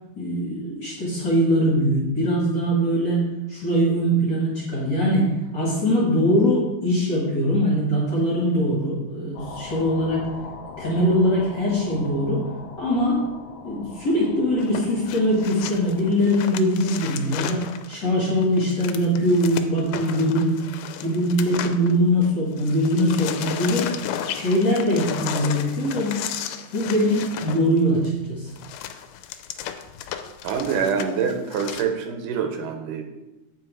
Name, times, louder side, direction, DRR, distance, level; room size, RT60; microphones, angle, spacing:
voice 1, 0.2-10.3 10.8-12.5 12.8-13.2 13.6-20.6 21.0-23.9 24.3-26.2 26.7-28.5, equal, 45° left, -5 dB, 1.5 m, -22 dB
sound 1, 9.3-16.2, left 4 dB, 65° left, 1.7 m, -41 dB
sound 2, 14.6-22.3 22.6-31.8, left 10 dB, 85° left, 2.2 m, -34 dB
voice 2, 30.4-33.0, right 6 dB, 85° right, 6 dB, 2.3 m, -26 dB
8.1 x 4.8 x 4.6 m, 1.0 s
omnidirectional pair, 3.8 m